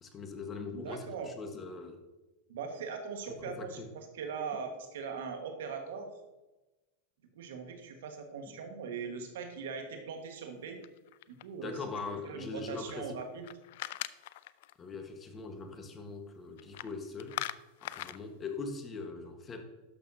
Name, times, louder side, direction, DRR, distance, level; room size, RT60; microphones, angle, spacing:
voice 1, 0.0-2.0 3.4-3.9 8.5-8.6 11.6-13.2 14.8-17.4 17.8-19.6, left 4 dB, 25° left, 6 dB, 1.3 m, -41 dB
voice 2, 0.7-1.3 2.5-6.1 7.3-10.8 11.3-11.7 12.2-13.4, right 5 dB, 80° right, 5 dB, 1.5 m, -40 dB
sound 1, 10.8-11.7 13.2-14.7 16.6-16.9 17.2-18.2, left 15 dB, 70° left, 0.3 m, -40 dB
12.0 x 6.5 x 2.7 m, 1.1 s
hypercardioid pair, 115°, 0 cm